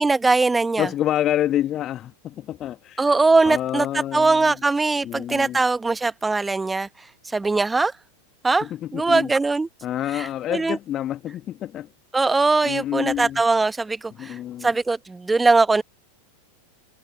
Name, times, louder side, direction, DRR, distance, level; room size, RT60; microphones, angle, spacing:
voice 1, 0.0-0.9 3.0-3.9 4.1-7.9 8.4-9.7 10.1-10.8 12.1-15.8, right 3 dB, 10° right, 1.4 m, -21 dB
voice 2, 0.8-3.1 3.4-4.5 5.0-5.6 8.6-9.3 9.8-11.9 12.6-13.4 14.2-14.7, left 12 dB, 30° left, 2.6 m, -28 dB
figure-of-eight pair, 90°, 0 cm